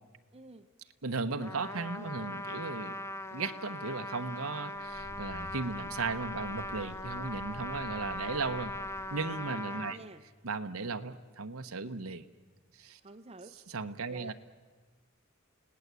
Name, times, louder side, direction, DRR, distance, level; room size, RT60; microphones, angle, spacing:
voice 1, 0.3-0.7 9.4-10.2 13.0-13.6 14.1-14.3, right 2 dB, 30° right, 4 dB, 0.7 m, -50 dB
voice 2, 1.0-3.0 3.3-8.7 9.1-10.0 10.4-12.2 12.8-13.0 13.7-14.3, right 4 dB, 75° right, 8 dB, 1.1 m, -36 dB
Trumpet, 1.4-10.0, left 1 dB, 15° left, 0.7 m, -40 dB
sound 1, 4.7-9.6, left 2 dB, 55° left, 0.8 m, -50 dB
30.0 x 18.5 x 8.3 m, 1.3 s
head